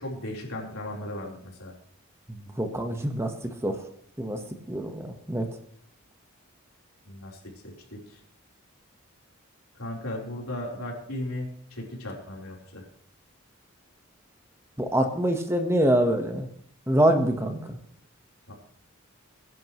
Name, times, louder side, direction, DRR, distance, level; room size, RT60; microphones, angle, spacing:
voice 1, 0.0-1.7 7.1-7.7 8.1-8.2 9.8-12.8 18.5-18.6, left 1 dB, 90° left, -2 dB, 4.0 m, -36 dB
voice 2, 2.3-3.8 4.2-5.5 14.8-16.5 16.9-17.8, right 1 dB, 10° right, 5 dB, 1.2 m, -25 dB
22.0 x 11.0 x 3.1 m, 0.62 s
head